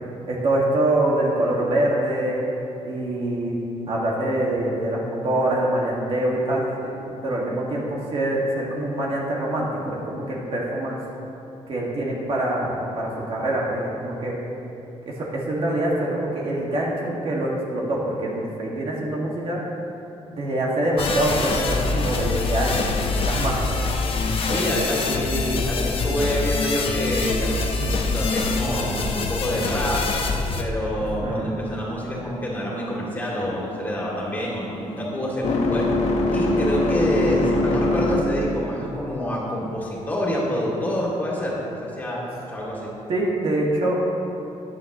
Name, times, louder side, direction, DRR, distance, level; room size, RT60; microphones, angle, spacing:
voice 1, 0.3-2.4 2.8-3.6 3.9-11.0 11.7-14.4 15.1-19.6 20.3-23.0 23.2-23.6 24.3-24.9 31.2-31.5 43.1-44.3, right 1 dB, 45° right, -4 dB, 1.9 m, -25 dB
sound 1, 21.0-30.6, left 3 dB, 45° left, 1.0 m, -25 dB
voice 2, 24.5-30.0 30.6-35.9 36.3-42.9, equal, 15° left, -5 dB, 2.6 m, -27 dB
sound 2, 32.7-38.6, left 2 dB, 60° left, 1.2 m, -24 dB
15.0 x 11.0 x 3.1 m, 2.9 s
cardioid pair, 160°, 13 cm